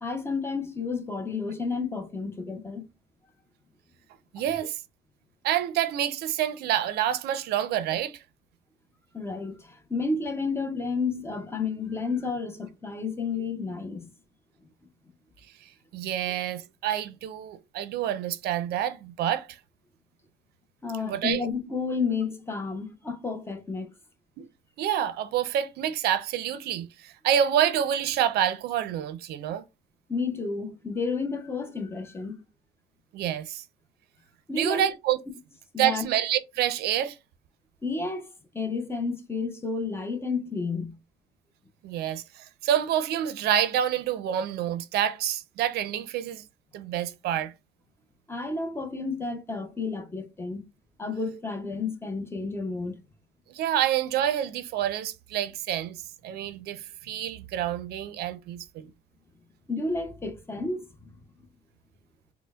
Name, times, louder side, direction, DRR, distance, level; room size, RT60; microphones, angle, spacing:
voice 1, 0.0-2.8 9.1-14.1 20.8-23.9 30.1-32.4 34.5-34.8 35.7-36.1 37.8-41.0 48.3-50.6 51.0-53.0 59.7-61.1, left 4 dB, 15° left, 0.5 m, -31 dB
voice 2, 4.3-4.8 5.4-8.2 15.9-19.5 21.1-21.4 24.4-24.5 24.8-29.6 33.1-33.6 34.6-35.2 35.8-37.2 41.8-46.4 46.7-47.5 53.5-56.0 56.2-58.9, right 10 dB, 70° right, 0.4 m, -27 dB
4.2 x 2.0 x 2.3 m
cardioid pair, 110°, 17 cm